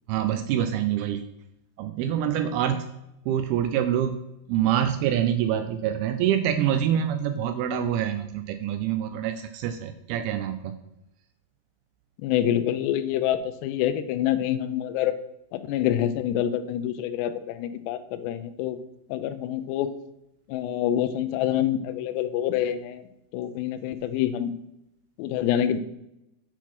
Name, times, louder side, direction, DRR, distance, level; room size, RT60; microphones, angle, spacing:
voice 1, 0.1-1.2 1.8-2.8 3.3-4.2 4.5-10.8, right 10 dB, 85° right, 9 dB, 2.3 m, -26 dB
voice 2, 12.2-15.1 15.5-18.8 19.1-19.9 20.5-23.0 23.3-24.5 25.2-25.8, left 11 dB, 90° left, 11 dB, 2.8 m, -26 dB
8.0 x 4.4 x 5.9 m, 0.85 s
omnidirectional pair, 4.8 m